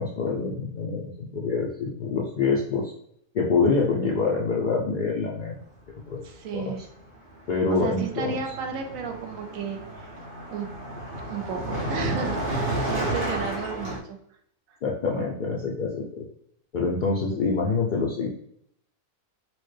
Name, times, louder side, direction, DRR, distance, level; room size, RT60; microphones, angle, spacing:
voice 1, 0.0-2.9 3.3-5.6 6.1-6.2 6.5-6.7 7.5-8.4 14.8-16.2 16.7-18.3, left 4 dB, 90° left, -2 dB, 0.4 m, -26 dB
voice 2, 6.2-6.8 7.7-10.1 10.5-10.7 11.1-14.2 14.7-14.8, right 6 dB, 80° right, 4 dB, 1.0 m, -33 dB
Car passing by, 6.5-6.7 7.0-14.0, right 1 dB, 45° right, 0.9 m, -32 dB
4.3 x 2.1 x 3.2 m, 0.71 s
omnidirectional pair, 1.4 m